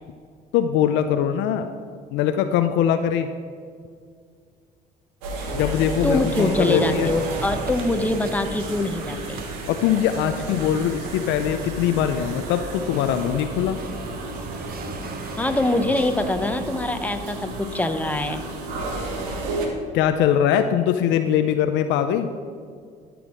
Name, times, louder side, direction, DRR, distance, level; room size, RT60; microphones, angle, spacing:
voice 1, 0.5-1.7 2.1-3.3 5.5-7.1 9.7-13.8 19.9-22.3, left 9 dB, 80° left, 8 dB, 0.5 m, -22 dB
sound 1, 5.2-19.7, right 2 dB, 90° right, 1.4 m, -32 dB
voice 2, 6.0-9.4 15.4-18.4, left 2 dB, 10° left, 7 dB, 0.9 m, -24 dB
sound 2, 6.5-17.2, right 4 dB, 55° right, 1.1 m, -38 dB
12.5 x 6.2 x 4.9 m, 2.1 s
supercardioid pair, 60°, 19 cm